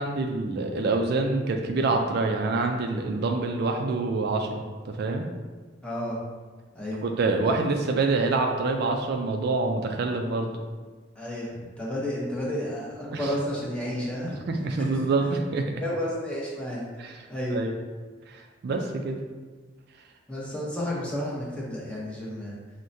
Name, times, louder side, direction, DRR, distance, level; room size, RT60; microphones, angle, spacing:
voice 1, 0.0-5.3 7.0-10.5 13.1-13.3 14.5-15.7 17.0-17.1 17.5-17.7 18.6-19.2, right 3 dB, 55° right, 3 dB, 0.3 m, -26 dB
voice 2, 5.8-6.2 6.7-7.0 11.2-14.4 14.9-15.0 15.8-16.8 17.3-17.6 20.3-22.6, equal, 5° left, -5 dB, 0.7 m, -31 dB
6.1 x 2.1 x 2.6 m, 1.4 s
head